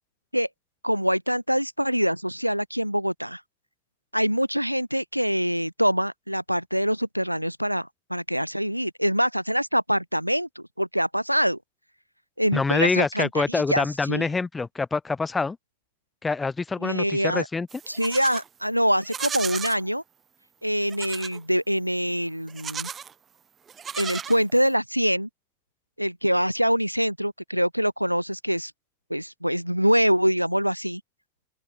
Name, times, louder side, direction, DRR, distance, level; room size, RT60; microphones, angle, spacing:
voice 1, 0.8-3.4 4.1-11.6 12.4-14.3 16.8-17.5 17.9-20.0 20.6-22.9 23.9-25.3 26.0-28.7 29.1-31.0, equal, 90° right, 2.3 m, -24 dB
voice 2, 12.5-15.6 16.2-17.7, left 4 dB, 10° left, 5.8 m, -25 dB
Livestock farm animals working animals, 17.7-18.5 19.0-19.8 20.9-21.4 22.5-23.1 23.7-24.7, right 7 dB, 20° right, 6.1 m, -35 dB
open air
figure-of-eight pair, 90°, 0 cm